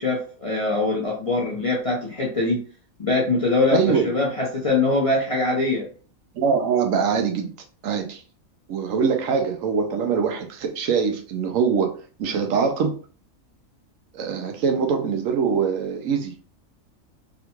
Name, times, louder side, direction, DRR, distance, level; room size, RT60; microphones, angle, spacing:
voice 1, 0.0-2.6 3.0-5.9, left 3 dB, 35° left, -4 dB, 0.5 m, -23 dB
voice 2, 3.7-4.1 6.3-7.5 7.8-8.2 8.7-11.9 12.2-13.0 14.1-16.3, right 6 dB, 75° right, 4 dB, 0.9 m, -23 dB
3.7 x 2.2 x 2.9 m, 0.40 s
omnidirectional pair, 1.5 m